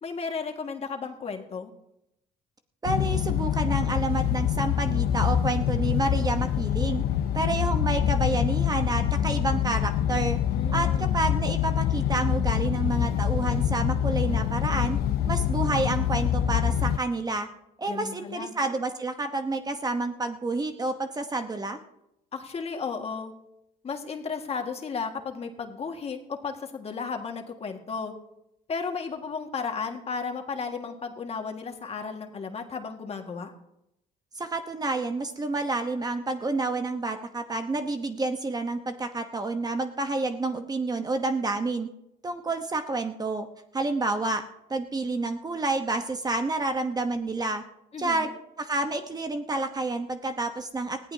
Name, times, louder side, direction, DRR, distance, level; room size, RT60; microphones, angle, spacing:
voice 1, 0.0-1.7 10.5-11.2 17.9-18.5 22.3-23.3 23.8-28.1 28.7-33.5 47.9-48.3, left 5 dB, 35° left, 4 dB, 1.8 m, -34 dB
sound 1, 2.8-17.0, left 10 dB, 70° left, 0.7 m, -25 dB
voice 2, 2.8-7.0 7.3-10.4 10.7-15.0 15.3-17.5 17.8-21.8 34.3-41.9 42.2-43.5 43.7-44.4 44.7-47.6 48.0-48.3 48.6-51.1, right 3 dB, 25° right, 7 dB, 1.0 m, -29 dB
19.5 x 14.5 x 2.8 m, 0.83 s
cardioid pair, 110°, 17 cm